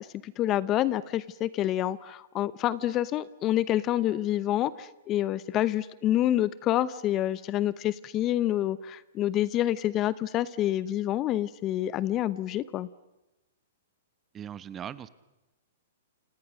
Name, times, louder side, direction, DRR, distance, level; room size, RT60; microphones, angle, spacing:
voice 1, 0.0-12.9, left 13 dB, 30° left, 18 dB, 0.8 m, -27 dB
voice 2, 14.3-15.1, right 9 dB, 20° right, 16 dB, 1.1 m, -39 dB
28.5 x 28.0 x 6.4 m, 1.0 s
hypercardioid pair, 130°, 0 cm